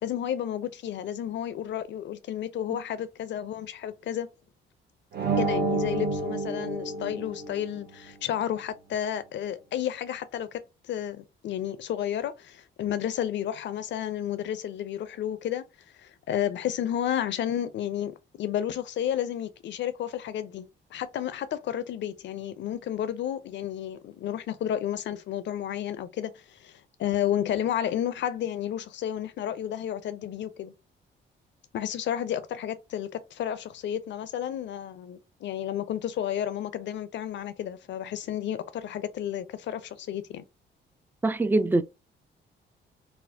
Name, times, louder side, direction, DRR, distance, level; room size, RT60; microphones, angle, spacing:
voice 1, 0.0-4.3 5.4-15.6 16.0-30.7 31.7-40.4, left 10 dB, 65° left, 0.6 m, -32 dB
sound 1, 5.1-7.8, right 3 dB, 55° right, 0.8 m, -29 dB
voice 2, 41.2-41.8, right 2 dB, 10° right, 0.3 m, -23 dB
4.2 x 2.0 x 2.6 m
cardioid pair, 90°, 20 cm